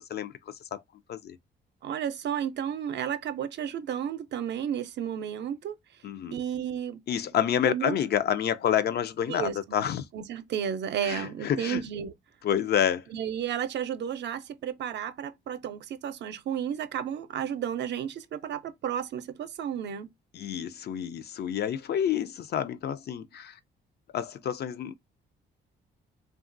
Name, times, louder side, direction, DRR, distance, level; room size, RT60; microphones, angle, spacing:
voice 1, 0.1-0.8 1.1-1.4 6.0-6.4 7.1-10.0 11.0-11.8 12.4-13.0 20.3-23.6 24.1-24.9, left 9 dB, 55° left, 0.4 m, -28 dB
voice 2, 1.8-5.7 6.3-7.0 7.6-8.0 9.3-9.8 10.1-12.1 13.1-20.1, right 9 dB, 60° right, 0.5 m, -32 dB
2.8 x 2.3 x 2.5 m
cardioid pair, 90°, 20 cm